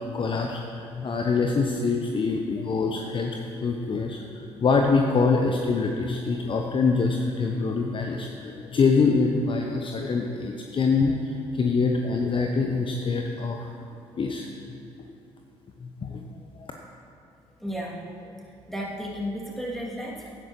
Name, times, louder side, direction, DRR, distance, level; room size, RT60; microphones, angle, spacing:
voice 1, 0.0-3.3 3.6-13.7 14.2-14.8 15.8-16.2 16.6-16.7, left 4 dB, 35° left, 2 dB, 0.9 m, -25 dB
voice 2, 17.6-18.3 18.7-20.3, equal, ahead, -4 dB, 2.8 m, -33 dB
17.0 x 10.5 x 3.2 m, 2.5 s
figure-of-eight pair, 45°, 15 cm